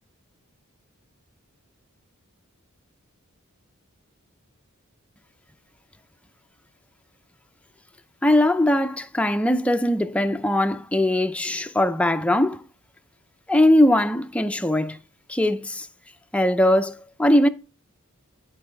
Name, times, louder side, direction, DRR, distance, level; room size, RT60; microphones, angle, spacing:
voice 1, 8.2-12.6 13.5-15.0 15.3-15.9 16.3-17.5, left 1 dB, 5° left, 0.4 m, -20 dB
10.5 x 4.7 x 3.7 m
head